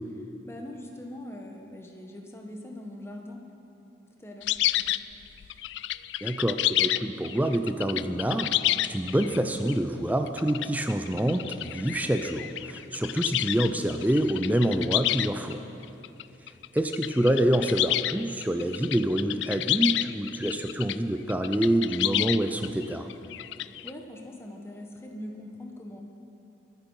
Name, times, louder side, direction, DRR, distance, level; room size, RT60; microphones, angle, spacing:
voice 1, 0.4-3.4 4.2-4.9 23.8-26.0, left 1 dB, 15° left, 1 dB, 1.2 m, -42 dB
sound 1, 4.4-9.7 10.3-15.5 15.8-21.0 21.3-23.9, left 14 dB, 75° left, 0.3 m, -29 dB
voice 2, 6.2-8.5 8.8-15.6 16.7-23.1, right 1 dB, 10° right, 6 dB, 0.5 m, -26 dB
22.5 x 9.8 x 5.6 m, 2.8 s
head